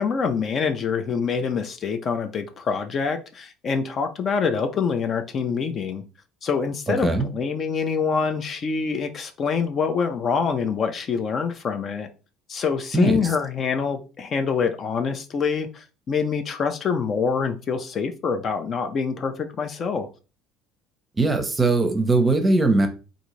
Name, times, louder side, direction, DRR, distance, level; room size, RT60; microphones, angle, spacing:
voice 1, 0.0-6.0 6.4-12.1 12.5-20.1, left 5 dB, 40° left, 0.5 m, -25 dB
voice 2, 12.9-13.3 21.2-22.9, right 3 dB, 15° right, 0.7 m, -20 dB
3.7 x 2.6 x 3.1 m
cardioid pair, 125°, 0 cm